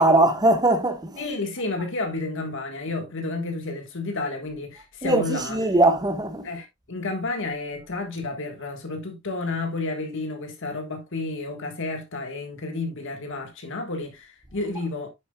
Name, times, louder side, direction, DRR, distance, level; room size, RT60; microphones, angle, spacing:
voice 1, 0.0-1.2 5.0-6.5, right 2 dB, 20° right, 1.3 m, -20 dB
voice 2, 1.2-5.6 6.4-15.1, left 3 dB, 60° left, 1.5 m, -31 dB
9.2 x 7.2 x 2.3 m
head